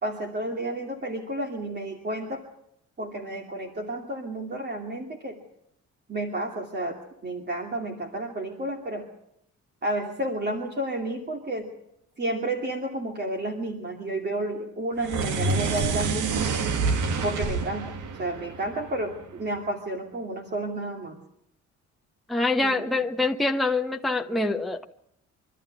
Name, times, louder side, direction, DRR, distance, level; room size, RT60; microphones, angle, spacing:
voice 1, 0.0-2.4 3.0-5.4 6.1-9.1 9.8-11.7 12.2-16.5 17.2-21.2 22.6-23.0, right 1 dB, 35° right, 2 dB, 2.7 m, -31 dB
sound 1, 15.0-19.4, right 4 dB, 80° right, 1.8 m, -28 dB
voice 2, 22.3-24.9, left 2 dB, ahead, 3 dB, 1.0 m, -25 dB
25.0 x 12.5 x 9.7 m, 0.76 s
cardioid pair, 90°, 30 cm